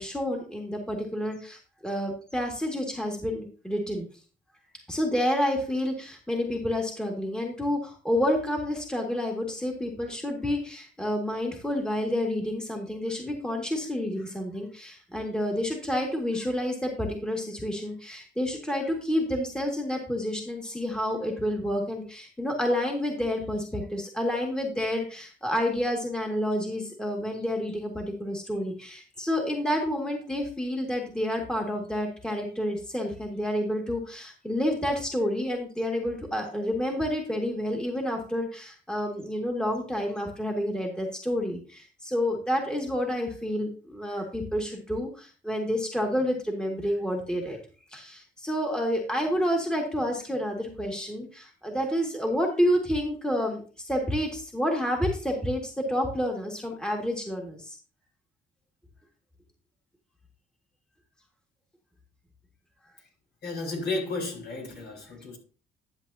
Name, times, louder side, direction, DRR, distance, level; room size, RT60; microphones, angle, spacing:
voice 1, 0.0-4.1 4.9-47.6 47.9-57.8, equal, 5° left, 2.0 m, -29 dB
voice 2, 63.4-65.4, left 3 dB, 55° left, 4.3 m, -33 dB
11.5 x 7.4 x 2.8 m
cardioid pair, 90°, 20 cm